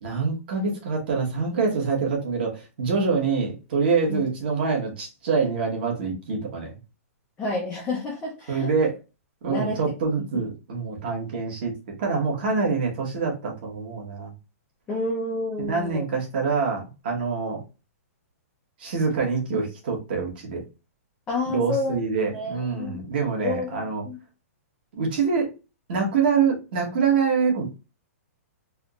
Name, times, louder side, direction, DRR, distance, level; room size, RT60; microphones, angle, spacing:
voice 1, 0.0-6.8 8.5-9.0 9.4-11.7 12.0-14.3 15.6-17.6 18.8-20.6 21.5-24.0 24.9-25.5 25.9-27.7, right 5 dB, 40° right, 0 dB, 1.3 m, -25 dB
voice 2, 7.4-8.7 9.5-9.8 14.9-16.0 21.3-22.0 22.3-23.0 23.4-24.2, left 2 dB, 10° left, -2 dB, 0.5 m, -29 dB
3.5 x 2.9 x 2.4 m, 0.29 s
hypercardioid pair, 175°, 8 cm